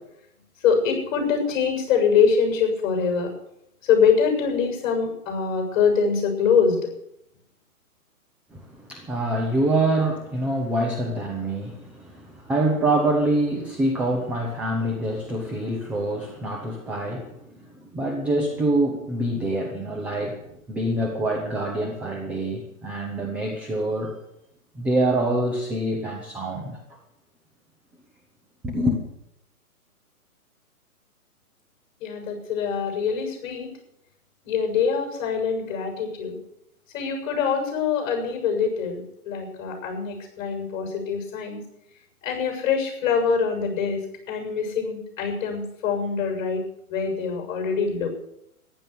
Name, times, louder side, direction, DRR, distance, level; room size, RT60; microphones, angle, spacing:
voice 1, 0.6-3.3 3.8-6.9 32.0-33.7 34.5-36.4 36.9-41.6 42.2-44.0 44.3-46.6 46.9-48.1, left 6 dB, 35° left, 3 dB, 7.0 m, -24 dB
voice 2, 8.5-24.2 24.7-27.0 28.6-29.0, right 1 dB, 5° right, 0 dB, 0.5 m, -25 dB
15.0 x 11.0 x 8.5 m, 0.79 s
hypercardioid pair, 140°, 45 cm